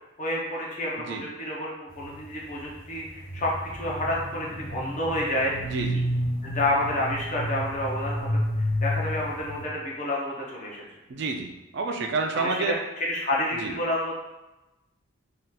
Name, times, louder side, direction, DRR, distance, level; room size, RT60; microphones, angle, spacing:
voice 1, 0.2-5.8 6.4-8.4 8.8-10.8 12.3-14.2, left 1 dB, 35° left, -4 dB, 0.5 m, -29 dB
sound 1, 1.9-9.6, equal, 80° left, 1.0 m, -31 dB
voice 2, 5.6-6.0 11.1-12.7 13.6-13.7, right 3 dB, 55° right, 3 dB, 0.4 m, -29 dB
3.5 x 2.7 x 2.3 m, 1.0 s
head